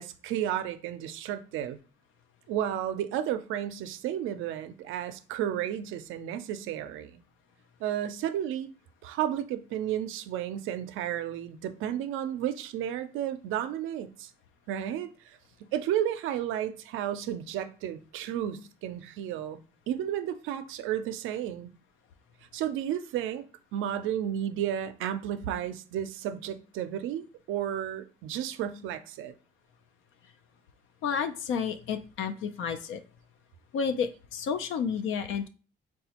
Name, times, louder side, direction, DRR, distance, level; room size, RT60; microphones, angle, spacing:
voice 1, 0.0-1.8 2.5-7.2 7.8-8.7 9.0-14.3 14.7-19.6 19.9-21.7 22.5-23.4 23.7-29.3, right 10 dB, 90° right, 0.4 m, -32 dB
voice 2, 31.0-33.0 33.7-35.5, left 6 dB, 85° left, 0.4 m, -31 dB
4.1 x 2.2 x 2.8 m
cardioid pair, 90°, 20 cm